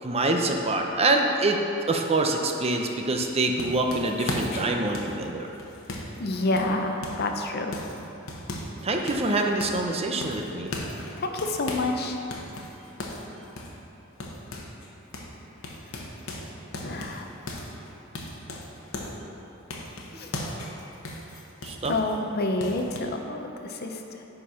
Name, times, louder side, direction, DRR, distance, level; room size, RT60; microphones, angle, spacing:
voice 1, 0.0-1.6 1.9-5.5 8.8-10.7 21.6-21.9, right 2 dB, 30° right, 3 dB, 0.6 m, -25 dB
sound 1, 3.1-7.3 7.7-8.8 9.1-9.9 10.2-12.0 12.3-14.9 15.1-15.3 15.6-19.2 19.7-22.2 22.6-23.0, left 1 dB, 70° left, 1.0 m, -37 dB
voice 2, 6.2-7.8 11.2-12.2 16.8-17.3 20.1-20.3 21.9-24.0, left 2 dB, 50° left, 4 dB, 0.7 m, -28 dB
9.5 x 4.4 x 5.6 m, 2.9 s
head